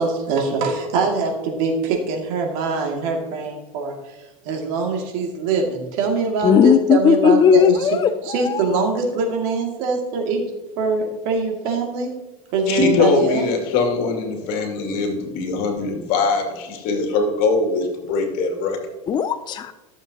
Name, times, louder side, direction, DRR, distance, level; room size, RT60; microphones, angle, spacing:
voice 1, 0.0-4.2 4.4-7.9 8.3-10.4 10.8-12.1 12.5-13.5, right 3 dB, 65° right, 2 dB, 2.3 m, -23 dB
voice 2, 6.4-8.9 19.1-19.7, left 7 dB, 25° left, 10 dB, 0.4 m, -17 dB
voice 3, 12.7-18.8, left 3 dB, 55° left, 3 dB, 2.4 m, -21 dB
13.5 x 7.2 x 2.8 m, 1.1 s
hypercardioid pair, 100°, 18 cm